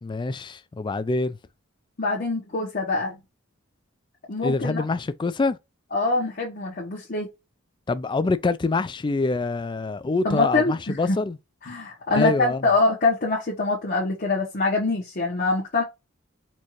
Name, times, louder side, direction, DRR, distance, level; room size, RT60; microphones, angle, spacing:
voice 1, 0.0-1.4 4.4-5.6 7.9-11.4 12.1-12.6, left 3 dB, 25° left, 0.3 m, -25 dB
voice 2, 2.0-3.2 4.3-4.8 5.9-7.3 10.2-11.2 11.6-15.8, left 3 dB, 45° left, 1.1 m, -24 dB
4.4 x 2.5 x 3.1 m
head